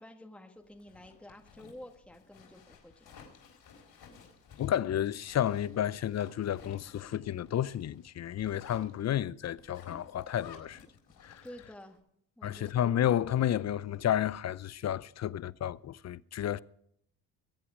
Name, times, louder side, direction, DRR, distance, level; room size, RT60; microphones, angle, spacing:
voice 1, 0.0-3.2 11.4-12.0 12.4-12.8, left 1 dB, 5° left, 1.6 m, -50 dB
Zipper (clothing), 0.7-11.9, left 6 dB, 60° left, 4.6 m, -55 dB
voice 2, 4.6-10.8 11.2-11.4 12.4-16.6, left 11 dB, 40° left, 0.6 m, -31 dB
21.5 x 8.5 x 5.0 m
supercardioid pair, 75°, 42 cm